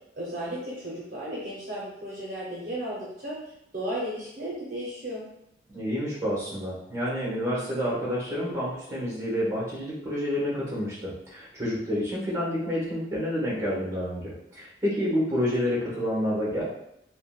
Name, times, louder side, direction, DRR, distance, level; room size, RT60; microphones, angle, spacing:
voice 1, 0.2-3.4 3.7-5.3, right 1 dB, 50° right, -6 dB, 0.7 m, -34 dB
voice 2, 5.7-16.6, equal, 15° right, -7 dB, 1.0 m, -29 dB
3.5 x 2.1 x 2.3 m, 0.81 s
head